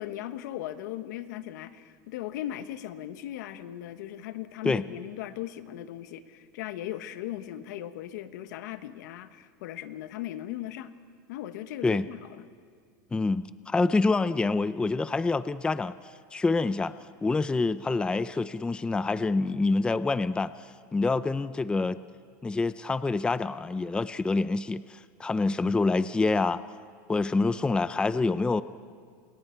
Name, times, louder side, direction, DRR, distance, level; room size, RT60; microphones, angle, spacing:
voice 1, 0.0-10.9 11.3-12.4, left 12 dB, 80° left, 10 dB, 1.3 m, -38 dB
voice 2, 13.1-16.0 16.3-16.9 17.2-20.5 20.9-22.0 22.4-26.6 27.1-28.6, left 3 dB, 10° left, 14 dB, 0.5 m, -26 dB
30.0 x 28.0 x 4.6 m, 2.1 s
supercardioid pair, 135°, 10 cm